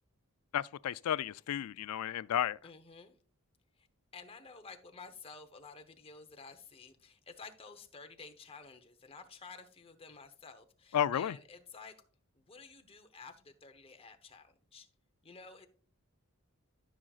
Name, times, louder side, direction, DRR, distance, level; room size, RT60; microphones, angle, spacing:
voice 1, 0.5-2.6 10.9-11.4, left 10 dB, 85° left, 0.3 m, -32 dB
voice 2, 2.6-3.1 3.8-3.9 4.1-12.0 12.3-14.9 15.2-15.7, left 4 dB, 25° left, 0.9 m, -52 dB
13.5 x 6.2 x 2.4 m
head